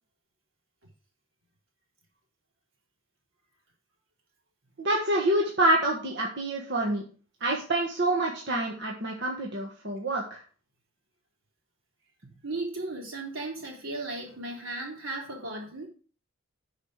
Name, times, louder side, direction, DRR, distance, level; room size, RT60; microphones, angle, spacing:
voice 1, 4.8-7.0 7.4-10.4, right 1 dB, 60° right, -1 dB, 1.5 m, -27 dB
voice 2, 12.4-15.9, right 2 dB, 80° right, -1 dB, 3.5 m, -36 dB
10.5 x 4.9 x 5.0 m, 0.40 s
head